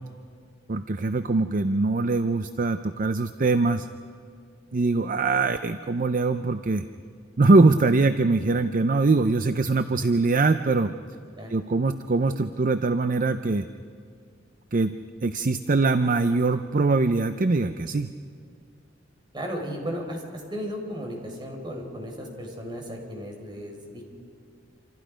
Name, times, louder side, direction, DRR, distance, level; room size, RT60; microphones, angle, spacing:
voice 1, 0.7-3.9 4.7-6.9 7.4-10.9 11.5-13.7 14.7-14.9 15.2-18.1, right 3 dB, 45° right, 10 dB, 0.6 m, -22 dB
voice 2, 19.3-24.0, equal, 25° right, 2 dB, 4.3 m, -35 dB
27.5 x 27.0 x 5.1 m, 2.2 s
head